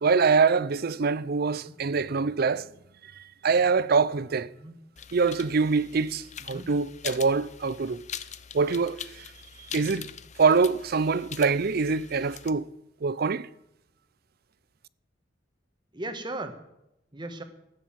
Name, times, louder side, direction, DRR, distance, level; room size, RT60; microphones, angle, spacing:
voice 1, 0.0-2.7 3.2-4.5 5.1-8.0 8.5-9.3 9.7-10.1 10.4-12.7 13.0-13.5, right 4 dB, 55° right, 0.5 m, -24 dB
sound 1, 5.0-12.5, left 9 dB, 40° left, 0.7 m, -43 dB
voice 2, 15.9-16.6 17.1-17.4, right 2 dB, 25° right, 1.5 m, -38 dB
14.5 x 9.9 x 7.5 m
head